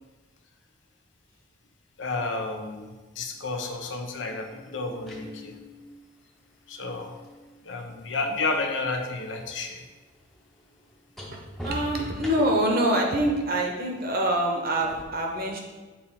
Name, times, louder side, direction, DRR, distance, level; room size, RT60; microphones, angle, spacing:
voice 1, 2.0-6.0 6.7-9.8, left 3 dB, 65° left, 3 dB, 0.8 m, -32 dB
sound 1, 4.7-8.7 9.0-12.8 14.8-15.0, equal, ahead, 0.8 m, -44 dB
voice 2, 11.6-15.6, right 1 dB, 45° right, 1 dB, 1.0 m, -25 dB
7.2 x 4.1 x 4.2 m, 1.3 s
head